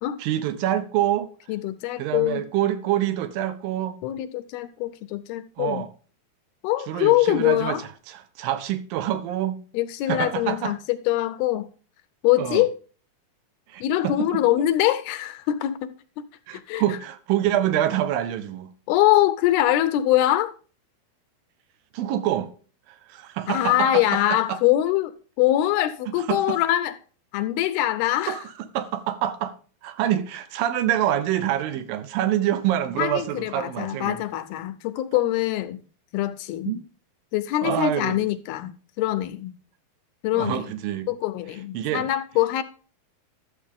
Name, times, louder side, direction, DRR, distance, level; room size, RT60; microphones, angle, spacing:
voice 1, 0.2-1.3 2.0-4.0 5.6-5.9 6.9-7.8 8.1-9.6 10.1-10.7 12.4-12.6 13.7-14.3 16.5-18.7 21.9-22.5 22.9-24.6 26.3-26.6 28.3-28.4 28.7-29.5 29.8-34.2 36.7-36.8 37.6-38.2 40.3-41.1 41.7-42.1, right 12 dB, 80° right, 2.1 m, -26 dB
voice 2, 1.5-2.4 4.0-5.9 6.6-7.8 9.7-11.7 12.2-12.7 13.8-16.2 16.5-17.0 18.9-20.5 23.5-27.0 27.3-28.4 33.0-35.8 36.1-36.8 37.3-39.5 40.2-40.7 41.1-42.6, left 14 dB, 80° left, 2.4 m, -23 dB
11.5 x 7.1 x 3.5 m
omnidirectional pair, 4.6 m